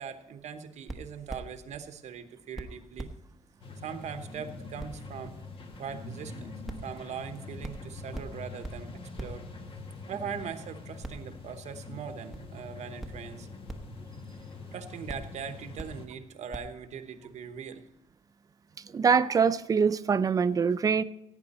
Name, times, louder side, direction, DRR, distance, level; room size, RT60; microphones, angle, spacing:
voice 1, 0.0-3.1 3.8-5.4 5.8-6.5 6.8-8.9 9.2-9.4 10.1-13.5 14.7-17.8, right 7 dB, 65° right, 1.0 m, -40 dB
sound 1, 0.9-1.8 2.2-2.3 2.5-2.6 3.0-3.2 3.4-3.5 3.9-4.0 4.3-4.4 4.8-4.9 5.2-5.3 5.7-5.8 6.2-6.3 6.7-6.9 7.2-7.3 7.6-7.8 8.1-8.3 8.6-8.8 9.2-9.3 9.8-9.9 10.4-10.5 11.0-11.3 11.7-11.8 12.3-12.4 13.0-13.1 13.7-13.9 14.4-14.5 15.1-15.3 15.8-15.9 16.5-16.6, right 2 dB, ahead, 1.0 m, -39 dB
sound 2, 3.6-16.1, left 3 dB, 45° left, 1.4 m, -44 dB
voice 2, 18.9-21.0, right 6 dB, 30° right, 0.5 m, -24 dB
17.0 x 9.2 x 4.2 m
cardioid pair, 155°, 13 cm